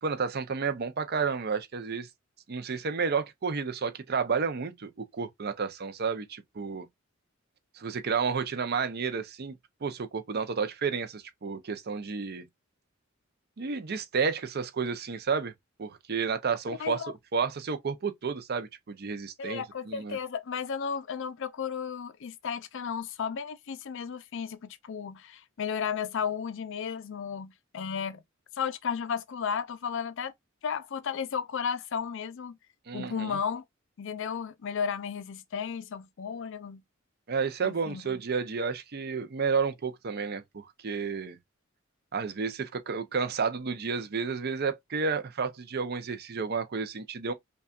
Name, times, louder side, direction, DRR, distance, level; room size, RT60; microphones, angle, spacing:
voice 1, 0.0-2.1 2.5-6.9 7.7-9.5 9.8-12.5 13.6-15.5 15.8-17.0 17.3-20.2 32.9-33.4 37.3-41.4 42.1-47.3, right 5 dB, 50° right, 0.6 m, -31 dB
voice 2, 16.8-17.1 19.4-28.2 28.6-30.3 30.6-32.6 32.9-33.6 34.0-36.8 37.6-38.0, left 7 dB, 65° left, 0.5 m, -34 dB
5.4 x 2.3 x 2.4 m
head